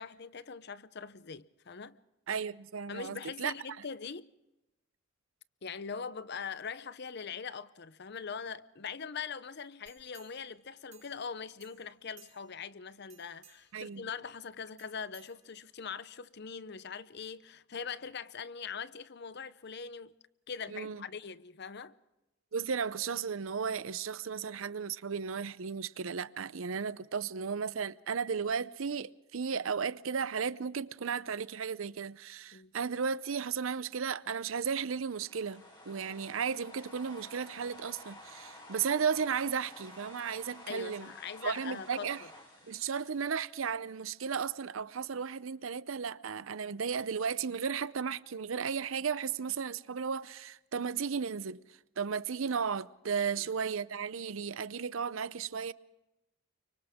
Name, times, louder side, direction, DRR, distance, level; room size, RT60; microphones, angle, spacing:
voice 1, 0.0-2.0 2.9-4.3 5.6-20.2 20.5-21.9 32.5-32.7 40.7-42.1 53.3-53.4, left 6 dB, 55° left, 0.7 m, -42 dB
voice 2, 2.3-3.5 13.7-14.1 20.7-21.0 22.5-41.1 41.4-42.2 42.7-51.6 52.0-55.7, right 6 dB, 80° right, 0.6 m, -34 dB
sound 1, 9.9-11.3 11.6-12.7 13.0-13.8 14.8-15.9 16.4-16.5, right 9 dB, 35° right, 3.6 m, -61 dB
sound 2, 34.9-44.1, left 1 dB, 25° left, 6.1 m, -52 dB
30.0 x 25.0 x 3.6 m
head